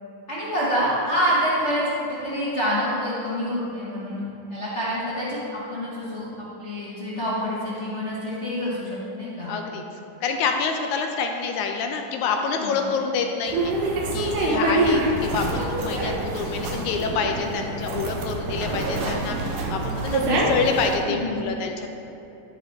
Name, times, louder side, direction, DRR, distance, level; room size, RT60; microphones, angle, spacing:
voice 1, 0.3-4.2 4.5-9.5 12.5-12.8 21.0-21.4, equal, 35° left, -9 dB, 1.2 m, -27 dB
voice 2, 9.5-9.8 10.2-13.7 14.1-21.9, left 5 dB, 80° left, 4 dB, 1.9 m, -27 dB
sound 1, 13.5-21.0, right 2 dB, 80° right, 2.6 m, -25 dB
11.5 x 8.0 x 3.6 m, 2.9 s
omnidirectional pair, 3.7 m